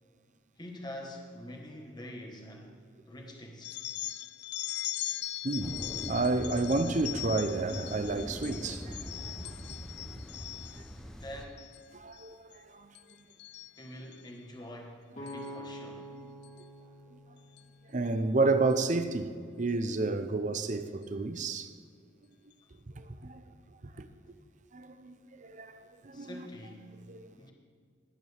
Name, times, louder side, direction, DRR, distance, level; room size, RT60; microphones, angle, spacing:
voice 1, 0.6-2.8 3.1-3.8 11.2-11.7 13.8-16.1 26.1-27.0 27.4-27.5, left 1 dB, 20° left, 1.3 m, -45 dB
sound 1, 3.6-10.9 11.4-11.8 12.1-12.6 12.9-14.3 15.3-15.5 16.4-16.6 17.6-17.7 18.1-18.2 18.7-18.9, left 15 dB, 60° left, 0.3 m, -40 dB
voice 2, 5.4-9.7 11.9-12.9 17.9-19.3 19.6-21.7 23.0-23.4 24.0-24.1 24.7-26.4 27.1-27.3, right 3 dB, 40° right, 0.6 m, -31 dB
sound 2, 5.6-11.5, equal, 5° left, 0.6 m, -43 dB
sound 3, 15.1-18.9, equal, 40° left, 2.5 m, -46 dB
19.0 x 8.9 x 3.4 m
head